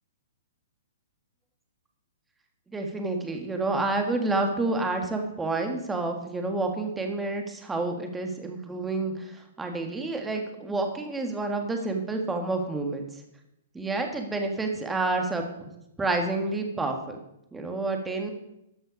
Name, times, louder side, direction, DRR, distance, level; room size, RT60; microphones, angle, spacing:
voice 1, 2.7-13.0 13.7-17.2 17.5-18.3, right 2 dB, 10° right, 3 dB, 1.6 m, -29 dB
13.0 x 7.8 x 5.3 m, 0.83 s
hypercardioid pair, 150°, 0 cm